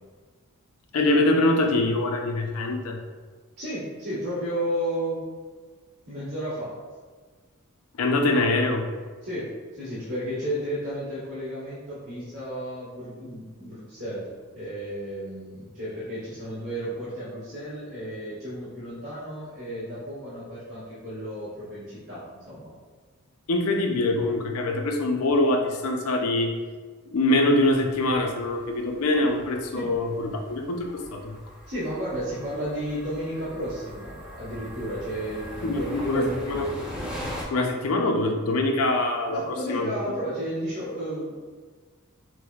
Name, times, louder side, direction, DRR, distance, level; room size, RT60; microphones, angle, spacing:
voice 1, 0.9-3.0 8.0-8.9 23.5-26.5 27.1-31.3 35.6-36.7 37.5-40.1, left 2 dB, 75° left, 4 dB, 0.5 m, -24 dB
voice 2, 3.6-5.3 6.1-6.7 9.2-14.3 14.5-22.7 29.7-29.9 31.7-36.7 39.3-41.5, equal, 70° right, -13 dB, 1.4 m, -33 dB
sound 1, 27.6-37.4, equal, 5° right, 0.6 m, -41 dB
6.0 x 2.1 x 2.3 m, 1.5 s
head